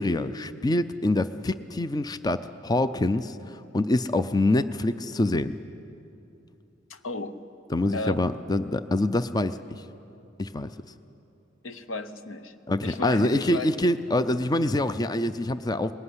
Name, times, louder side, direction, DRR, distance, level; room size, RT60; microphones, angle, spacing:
voice 1, 0.0-3.4 3.7-5.5 7.7-9.6 10.4-10.7 12.7-15.9, left 1 dB, 20° left, 12 dB, 0.4 m, -25 dB
voice 2, 6.9-7.4 7.9-8.2 11.6-12.5 12.8-13.7, left 2 dB, 85° left, 11 dB, 1.0 m, -34 dB
20.5 x 17.0 x 9.8 m, 2.8 s
head